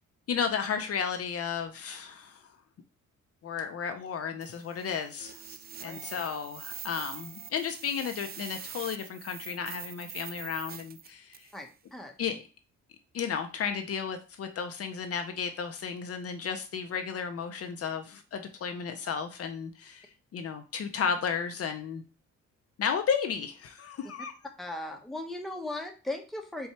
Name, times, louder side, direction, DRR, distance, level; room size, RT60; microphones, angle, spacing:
voice 1, 0.3-2.4 3.4-11.5 12.2-12.4 13.1-20.1 20.3-22.0 22.8-24.3, left 7 dB, 50° left, 6 dB, 0.6 m, -33 dB
sound 1, 4.4-11.6, right 8 dB, 35° right, 0.4 m, -44 dB
voice 2, 11.5-12.1 24.6-26.7, left 1 dB, ahead, 3 dB, 0.8 m, -37 dB
4.5 x 2.3 x 4.2 m, 0.34 s
cardioid pair, 90°, 30 cm